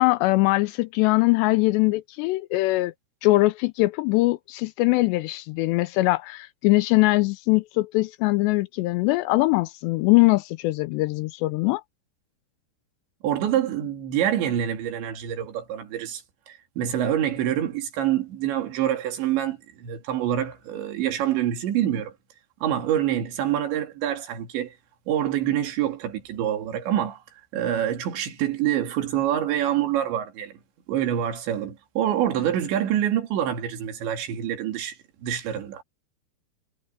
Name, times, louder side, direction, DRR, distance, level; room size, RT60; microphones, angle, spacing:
voice 1, 0.0-2.9 3.2-11.8, left 21 dB, 85° left, 2.5 m, -22 dB
voice 2, 13.2-16.2 16.5-22.1 22.6-24.7 25.1-27.2 27.5-30.6 30.9-35.0 35.2-35.8, right 11 dB, 70° right, 4.8 m, -26 dB
omnidirectional pair, 5.4 m